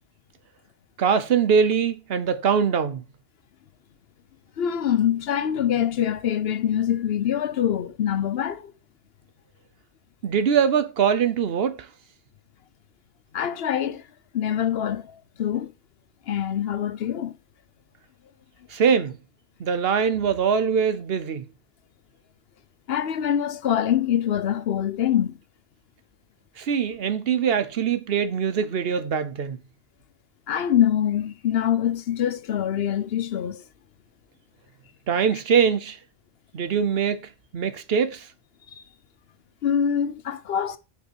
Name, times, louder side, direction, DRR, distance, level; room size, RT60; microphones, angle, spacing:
voice 1, 1.0-3.0 10.2-11.9 18.7-19.2 19.6-21.5 26.6-29.6 35.1-36.0 36.5-37.2 37.5-38.3, right 7 dB, 70° right, 1.0 m, -22 dB
voice 2, 4.6-8.7 13.3-14.0 14.3-15.1 15.4-15.7 16.3-17.4 22.9-25.4 30.5-33.6 38.7-38.8 39.6-40.8, left 9 dB, 70° left, 1.0 m, -24 dB
6.9 x 5.5 x 4.6 m
omnidirectional pair, 1.1 m